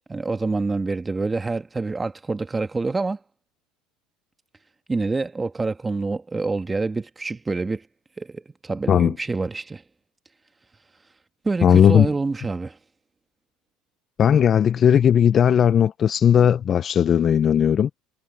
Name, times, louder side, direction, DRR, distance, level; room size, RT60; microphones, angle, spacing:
voice 1, 0.1-3.2 4.9-7.9 8.2-9.8 11.4-12.8, right 3 dB, 15° right, 2.0 m, -27 dB
voice 2, 11.6-12.1 14.2-17.9, left 8 dB, 40° left, 1.0 m, -17 dB
supercardioid pair, 95°, 0 cm